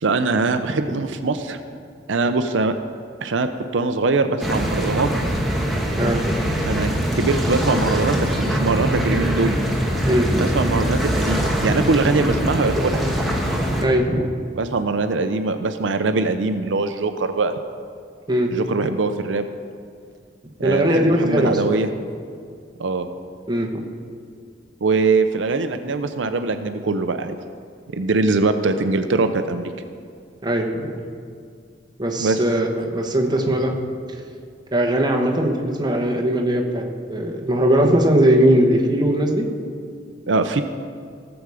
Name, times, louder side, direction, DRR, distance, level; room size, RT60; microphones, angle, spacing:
voice 1, 0.0-1.6 2.1-2.7 3.2-5.1 6.6-9.6 10.4-13.1 14.6-17.5 18.5-19.5 20.6-21.9 22.8-23.1 24.8-27.4 27.9-29.7 32.2-32.4 40.3-40.6, right 3 dB, 80° right, 8 dB, 0.6 m, -22 dB
sound 1, 4.4-13.8, equal, ahead, 1.2 m, -22 dB
voice 2, 6.0-6.4 10.1-10.4 13.8-14.3 18.3-18.5 20.6-21.8 23.5-23.7 30.4-31.0 32.0-33.7 34.7-39.5, right 1 dB, 20° right, 1 dB, 1.2 m, -19 dB
17.0 x 7.1 x 4.9 m, 2.2 s
head